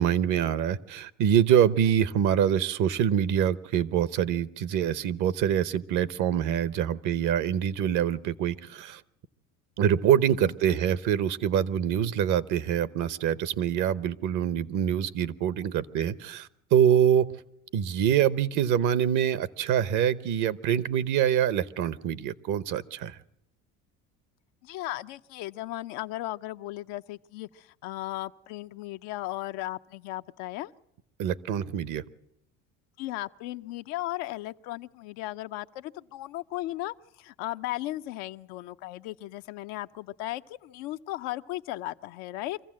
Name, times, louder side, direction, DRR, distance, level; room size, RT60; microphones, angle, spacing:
voice 1, 0.0-9.0 9.8-17.3 17.7-23.2 31.2-32.0, right 9 dB, 60° right, 17 dB, 0.9 m, -25 dB
voice 2, 24.6-30.7 33.0-42.6, left 16 dB, 75° left, 10 dB, 0.7 m, -36 dB
24.5 x 15.0 x 7.5 m, 0.81 s
supercardioid pair, 85°, 35 cm